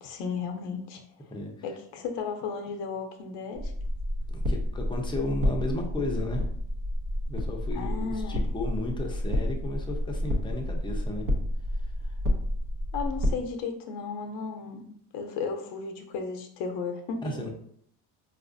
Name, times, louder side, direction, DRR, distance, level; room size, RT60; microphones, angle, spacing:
voice 1, 0.0-1.0 1.6-3.6 7.7-8.5 12.9-14.9 15.1-17.4, left 5 dB, 75° left, 4 dB, 0.6 m, -34 dB
sound 1, 3.6-13.3, left 1 dB, 50° right, 0.8 m, -30 dB
voice 2, 4.3-6.4 7.3-11.3 12.0-12.2 17.2-17.5, left 2 dB, 10° left, 1 dB, 0.6 m, -34 dB
4.2 x 2.3 x 2.5 m, 0.64 s
cardioid pair, 105°, 42 cm